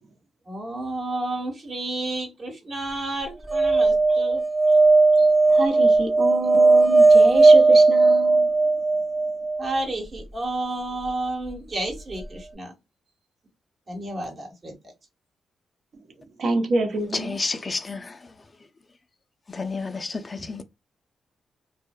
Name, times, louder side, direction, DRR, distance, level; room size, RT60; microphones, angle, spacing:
voice 1, 0.5-4.4 9.6-12.7 13.9-14.7, right 2 dB, 45° right, 1.1 m, -31 dB
sound 1, 3.5-9.6 11.9-12.0 12.2-12.3, right 3 dB, 25° right, 0.5 m, -17 dB
voice 2, 5.1-8.5 16.4-17.4, right 2 dB, 65° right, 0.7 m, -27 dB
voice 3, 17.1-18.2 19.5-20.6, left 3 dB, 35° left, 0.4 m, -30 dB
2.6 x 2.1 x 2.2 m
cardioid pair, 65°, 0 cm